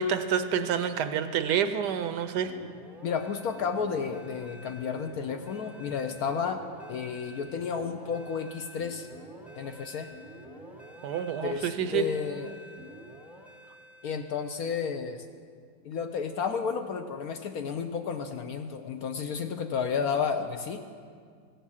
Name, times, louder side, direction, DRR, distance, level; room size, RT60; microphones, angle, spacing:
voice 1, 0.0-2.5 11.0-12.0, right 7 dB, 70° right, 10 dB, 1.1 m, -28 dB
sound 1, 2.5-14.6, equal, ahead, 0.3 m, -48 dB
voice 2, 3.0-6.6 6.9-9.1 9.5-10.1 11.4-12.6 14.0-15.2 15.8-20.8, left 6 dB, 70° left, 6 dB, 0.9 m, -32 dB
16.0 x 7.3 x 7.1 m, 2.1 s
omnidirectional pair, 2.0 m